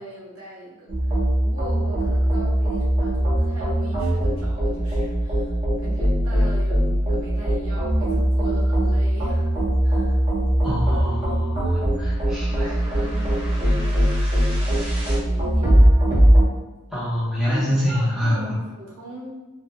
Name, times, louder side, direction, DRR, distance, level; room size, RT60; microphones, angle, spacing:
voice 1, 0.0-5.5 5.8-10.2 12.3-15.9 17.5-19.3, equal, 65° right, -5 dB, 0.8 m, -40 dB
sound 1, 0.9-16.4, right 1 dB, 25° right, 0.8 m, -20 dB
voice 2, 10.6-12.6 16.9-18.6, equal, 5° right, -11 dB, 1.0 m, -25 dB
3.4 x 2.5 x 2.2 m, 1.2 s
head